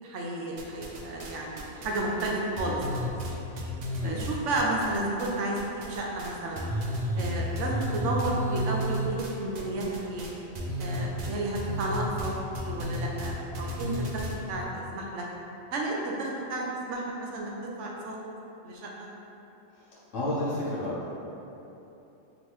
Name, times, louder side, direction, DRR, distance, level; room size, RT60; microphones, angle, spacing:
voice 1, 0.0-3.1 4.0-6.6 7.2-10.3 10.8-12.3 12.7-15.2 15.7-17.5 17.8-18.1 18.6-19.1, right 2 dB, 70° right, -2 dB, 0.9 m, -32 dB
sound 1, 0.6-1.3 1.6-5.3 5.5-6.3 6.5-14.4, equal, 90° right, 0.3 m, -32 dB
voice 2, 20.1-21.1, left 1 dB, 70° left, -7 dB, 1.3 m, -30 dB
4.3 x 3.1 x 3.0 m, 3.0 s
omnidirectional pair, 1.3 m